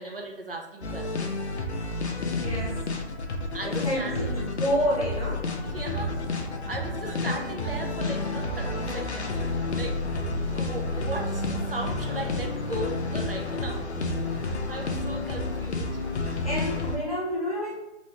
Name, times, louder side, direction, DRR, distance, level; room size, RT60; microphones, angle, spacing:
voice 1, 0.0-1.4 3.5-4.6 5.6-10.0 10.5-13.9 14.2-15.9 16.2-16.5, right 2 dB, 55° right, 1 dB, 0.5 m, -37 dB
sound 1, 0.8-17.0, left 3 dB, 70° left, 0.6 m, -30 dB
voice 2, 2.4-2.8 3.8-4.2 4.6-5.5 15.1-15.2 16.4-17.8, equal, 30° left, -6 dB, 0.7 m, -28 dB
sound 2, 4.9-15.3, right 1 dB, 25° right, 0.7 m, -41 dB
3.1 x 2.2 x 3.0 m, 1.0 s
hypercardioid pair, 175°, 35 cm